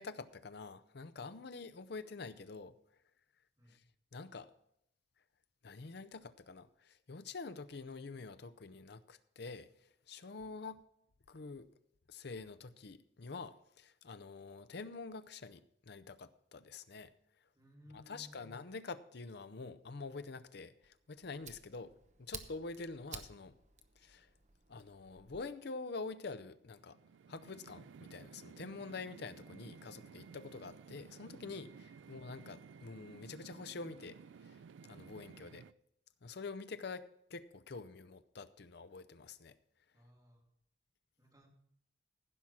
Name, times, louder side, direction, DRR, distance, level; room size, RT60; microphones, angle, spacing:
voice 1, 0.0-2.7 4.1-4.5 5.6-10.8 11.3-11.7 12.1-17.1 17.9-21.9 22.2-23.6 24.0-24.3 24.7-27.0 27.3-34.6 34.9-35.6 36.2-39.6, left 4 dB, 60° left, 13 dB, 0.7 m, -47 dB
voice 2, 17.5-18.5 21.8-21.9 32.0-32.1 35.3-35.5 39.9-40.4 41.2-41.5, equal, 20° right, -1 dB, 2.9 m, -60 dB
Fire, 20.8-25.4, right 6 dB, 40° right, 0.9 m, -53 dB
sound 1, 26.6-35.7, right 6 dB, 85° right, 0.4 m, -55 dB
15.5 x 5.8 x 6.1 m, 0.75 s
head